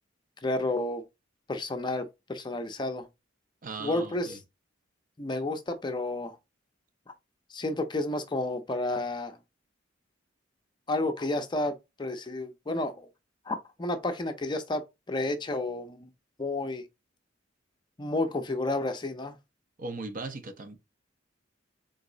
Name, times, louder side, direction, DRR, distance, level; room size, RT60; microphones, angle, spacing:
voice 1, 0.4-1.0 1.5-3.1 3.8-4.4 5.2-6.4 7.5-9.4 10.9-13.0 13.5-14.8 15.1-16.1 16.4-16.8 18.0-19.4, left 2 dB, 25° left, 0.5 m, -31 dB
voice 2, 3.6-4.4 19.8-20.8, right 3 dB, 45° right, 0.7 m, -38 dB
3.9 x 2.8 x 3.8 m
head